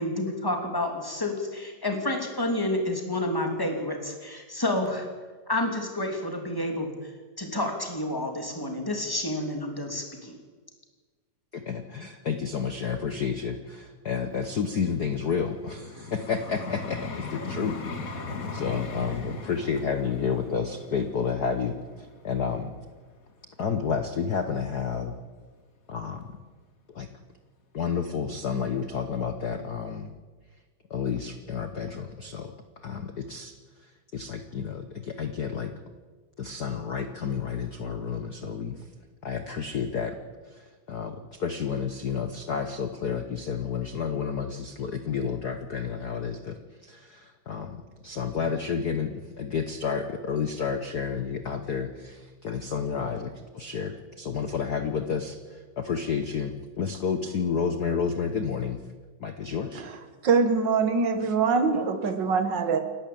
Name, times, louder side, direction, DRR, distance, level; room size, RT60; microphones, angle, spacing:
voice 1, 0.0-5.1 5.5-7.1 7.4-10.3, left 1 dB, 5° left, 3 dB, 2.6 m, -29 dB
voice 2, 11.5-17.8 18.5-22.7 23.6-25.1 25.9-26.2 26.9-27.1 27.7-30.1 30.9-32.5 32.8-33.5 33.8-35.7 36.4-38.8 39.2-40.2 40.5-47.8 48.0-58.8 59.2-59.8, left 6 dB, 75° left, 8 dB, 0.8 m, -30 dB
Vehicle, 14.2-23.3 23.9-24.1, left 3 dB, 35° left, 1.7 m, -39 dB
voice 3, 60.2-62.8, right 5 dB, 45° right, 9 dB, 1.9 m, -23 dB
28.5 x 12.0 x 8.7 m, 1.4 s
omnidirectional pair, 3.4 m